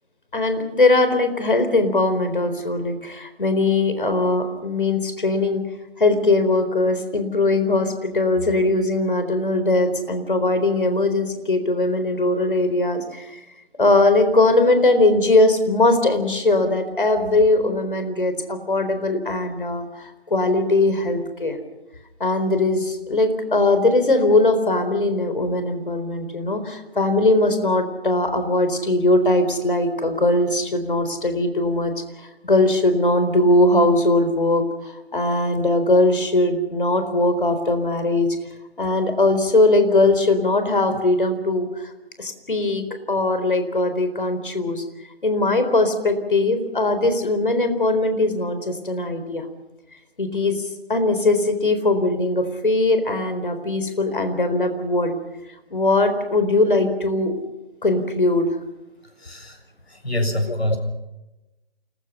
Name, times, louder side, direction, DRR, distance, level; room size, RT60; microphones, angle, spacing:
voice 1, 0.3-5.6 6.0-13.4 13.8-21.6 22.2-31.9 32.4-38.4 38.8-41.7 42.2-44.8 45.2-49.4 50.2-55.1 55.7-57.3 57.8-58.5 60.5-60.6, left 2 dB, 55° left, 8 dB, 4.2 m, -20 dB
voice 2, 59.2-59.6 59.9-60.8, left 1 dB, 75° left, 5 dB, 6.7 m, -25 dB
28.5 x 21.0 x 5.6 m, 1.0 s
figure-of-eight pair, 155°, 32 cm